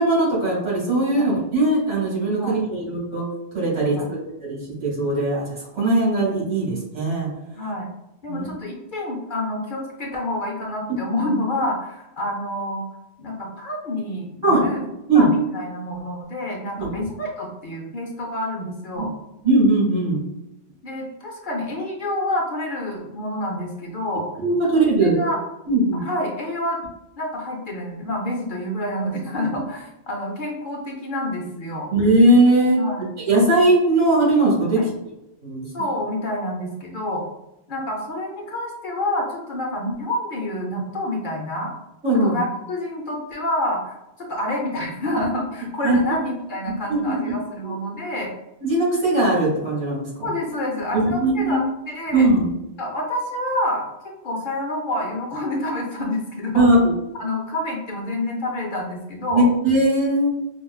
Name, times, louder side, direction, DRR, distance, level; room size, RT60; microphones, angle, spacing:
voice 1, 0.0-3.2 3.5-4.0 4.4-7.3 8.3-8.5 10.9-11.0 14.4-15.3 16.8-16.9 19.0-19.1 19.4-20.2 24.4-25.2 25.7-26.0 31.9-32.8 33.3-34.8 35.4-35.7 42.0-42.4 45.8-46.0 46.9-47.2 47.6-47.7 48.6-50.3 50.9-51.6 52.1-52.5 56.5-56.9 59.3-60.3, right 2 dB, 85° right, -5 dB, 1.9 m, -19 dB
voice 2, 7.5-7.9 8.2-12.9 13.2-14.8 15.1-19.1 20.8-24.3 25.0-25.4 25.9-26.8 27.2-31.9 32.7-33.1 34.8-34.9 35.7-37.2 37.7-41.7 42.2-48.3 50.2-52.3 52.8-56.7 57.2-59.5, left 1 dB, 55° left, -1 dB, 0.7 m, -28 dB
4.9 x 2.2 x 2.3 m, 0.92 s
omnidirectional pair, 1.2 m